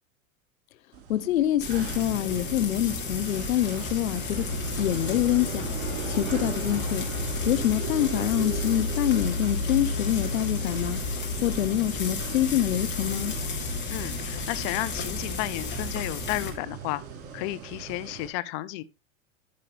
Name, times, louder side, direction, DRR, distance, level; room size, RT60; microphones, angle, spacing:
sound 1, 0.9-18.3, right 7 dB, 55° right, 4.7 m, -39 dB
voice 1, 1.1-4.5 4.8-5.7 6.1-7.1 7.5-11.0 11.4-13.4, left 12 dB, 80° left, 1.0 m, -26 dB
Frying (food), 1.6-16.5, left 3 dB, 25° left, 3.9 m, -32 dB
voice 2, 13.9-17.0 17.3-18.8, left 17 dB, 50° left, 0.8 m, -32 dB
14.5 x 5.6 x 3.3 m
hypercardioid pair, 110°, 41 cm